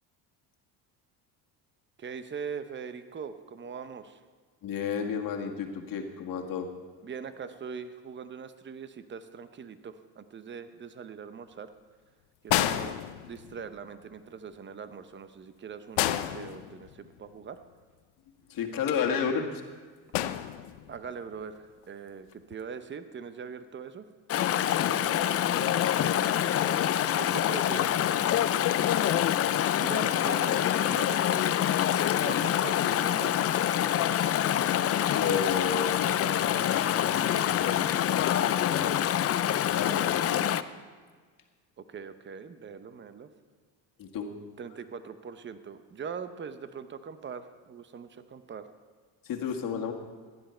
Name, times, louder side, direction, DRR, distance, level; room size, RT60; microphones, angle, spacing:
voice 1, 2.0-4.2 7.0-11.7 12.4-13.0 13.3-17.6 20.9-24.0 27.2-28.9 29.8-31.6 32.2-33.4 41.8-43.3 44.6-48.7, right 6 dB, 25° right, 11 dB, 0.8 m, -41 dB
voice 2, 4.6-6.7 18.5-19.6 24.7-25.7 35.0-36.7 37.0-39.0 39.7-40.5 44.0-44.3 49.2-49.9, left 6 dB, 55° left, 2 dB, 1.8 m, -32 dB
sound 1, 12.5-13.7 16.0-17.2 20.1-21.1 22.3-22.5, left 13 dB, 85° left, 0.7 m, -30 dB
Chatter / Stream, 24.3-40.6, left 11 dB, 35° left, 0.5 m, -26 dB
16.0 x 10.5 x 4.4 m, 1.5 s
supercardioid pair, 100°, 41 cm